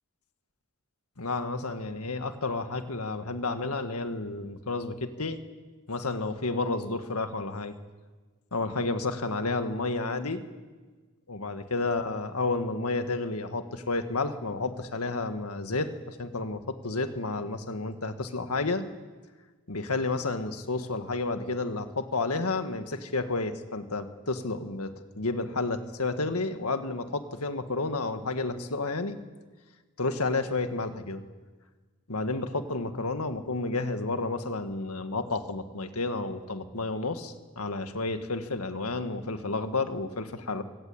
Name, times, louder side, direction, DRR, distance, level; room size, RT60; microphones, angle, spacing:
voice 1, 1.2-5.4 5.9-7.7 8.5-10.4 11.3-18.8 19.7-29.2 30.0-31.2 32.1-40.6, left 3 dB, 85° left, 8 dB, 1.8 m, -31 dB
25.0 x 18.0 x 8.8 m, 1.4 s
head